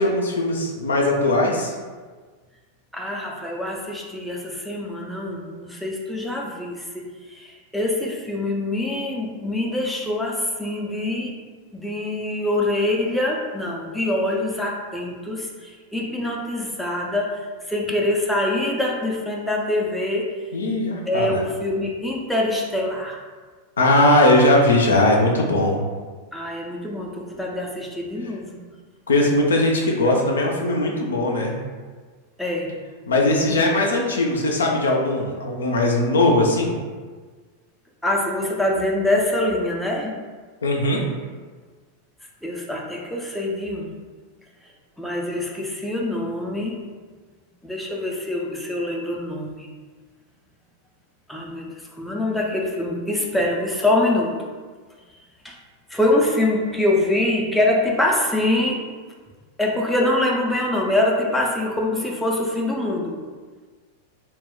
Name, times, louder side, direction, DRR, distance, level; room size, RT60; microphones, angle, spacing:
voice 1, 0.0-1.7 20.5-21.4 23.8-25.8 29.1-31.5 33.1-36.7 40.6-41.0, left 1 dB, 70° left, 0 dB, 0.4 m, -19 dB
voice 2, 2.9-11.4 11.7-20.3 21.1-23.2 26.3-28.7 32.4-32.7 33.5-33.6 38.0-40.2 42.4-44.0 45.0-46.9 47.6-49.7 51.3-54.4 55.4-55.6 55.9-58.9 59.6-63.2, left 1 dB, ahead, -2 dB, 0.4 m, -24 dB
2.3 x 2.1 x 3.6 m, 1.4 s
figure-of-eight pair, 90°, 0 cm